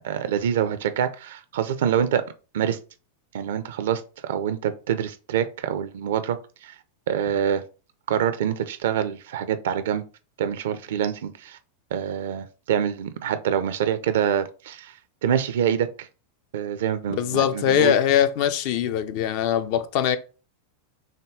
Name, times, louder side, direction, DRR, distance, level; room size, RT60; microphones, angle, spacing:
voice 1, 0.0-2.2 2.5-2.8 3.3-6.7 7.1-7.6 8.1-10.0 10.4-11.6 11.9-14.9 15.2-16.1 16.5-18.0, right 9 dB, 55° right, 0.5 m, -26 dB
voice 2, 17.2-20.2, left 10 dB, 45° left, 0.5 m, -22 dB
6.3 x 2.2 x 3.6 m
figure-of-eight pair, 90°, 0 cm